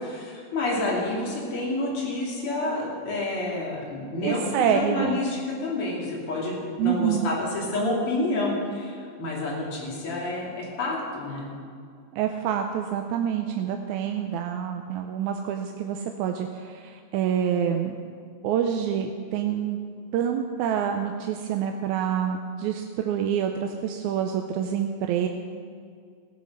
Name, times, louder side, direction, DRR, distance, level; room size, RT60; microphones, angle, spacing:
voice 1, 0.0-11.5, left 2 dB, 45° left, -5 dB, 3.8 m, -29 dB
voice 2, 4.2-5.2 6.8-7.3 12.1-18.0 18.4-19.8 20.1-25.3, right 8 dB, 85° right, 4 dB, 2.1 m, -27 dB
17.0 x 8.4 x 6.3 m, 2.2 s
omnidirectional pair, 3.4 m